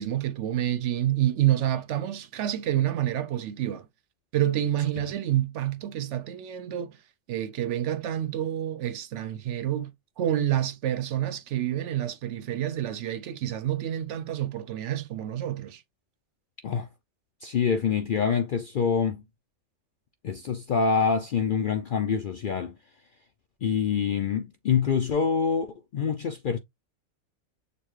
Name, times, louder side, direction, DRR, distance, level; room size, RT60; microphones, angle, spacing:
voice 1, 0.0-3.9 4.3-7.0 7.3-9.9 10.2-15.8, right 12 dB, 70° right, 0.8 m, -28 dB
voice 2, 17.4-19.2 20.2-22.7 23.6-26.6, left 6 dB, 65° left, 0.5 m, -26 dB
6.8 x 2.3 x 3.1 m
omnidirectional pair, 1.4 m